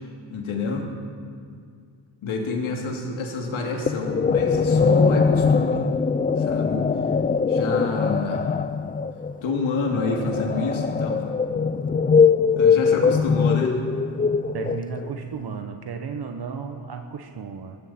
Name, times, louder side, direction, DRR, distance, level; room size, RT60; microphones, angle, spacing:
voice 1, 0.3-0.9 2.2-5.9 6.4-6.8 7.5-8.5 9.4-11.4 12.5-13.8, left 3 dB, 75° left, 1 dB, 2.6 m, -28 dB
sound 1, 3.9-15.2, left 5 dB, 20° left, 0.4 m, -21 dB
voice 2, 14.5-17.8, right 6 dB, 50° right, 5 dB, 1.1 m, -34 dB
18.5 x 15.5 x 4.3 m, 2.3 s
cardioid pair, 80°, 48 cm